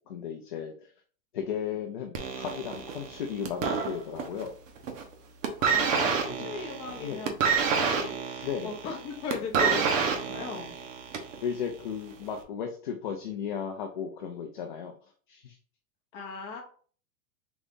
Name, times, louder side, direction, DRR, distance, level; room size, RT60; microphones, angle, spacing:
voice 1, 0.1-0.9 1.3-4.5 6.3-6.5 7.0-7.2 8.4-8.7 11.4-14.9 15.3-15.6, left 7 dB, 35° left, 3 dB, 0.4 m, -35 dB
sound 1, 2.1-4.5 4.8-5.1 5.4-11.4 12.2-12.3, right 6 dB, 60° right, 1.0 m, -28 dB
voice 2, 5.6-10.7 16.1-16.6, left 5 dB, 20° left, 0 dB, 0.8 m, -38 dB
4.0 x 3.5 x 3.6 m, 0.43 s
supercardioid pair, 180°, 43 cm